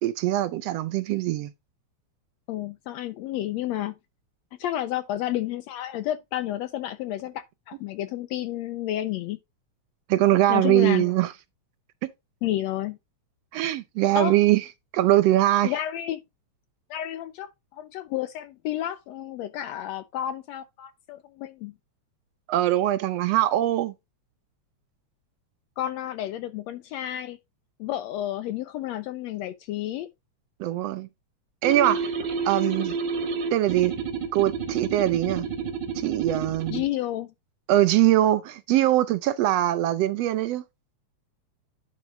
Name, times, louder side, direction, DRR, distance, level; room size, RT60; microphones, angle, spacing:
voice 1, 0.0-1.5 10.1-11.3 12.0-12.1 13.5-14.6 14.9-15.7 22.5-23.9 30.6-31.1 31.6-32.1 32.4-32.9 33.5-33.9 34.3-35.5 35.9-36.8 37.7-40.6, right 14 dB, 75° right, 1.6 m, -22 dB
voice 2, 2.5-3.9 4.6-9.4 10.5-11.1 12.4-13.0 14.2-14.4 15.6-16.2 16.9-21.7 25.8-27.4 27.8-30.1 36.7-37.3, left 13 dB, 80° left, 1.7 m, -31 dB
sound 1, 31.6-36.9, right 5 dB, 45° right, 1.9 m, -30 dB
10.5 x 4.7 x 3.7 m
omnidirectional pair, 3.3 m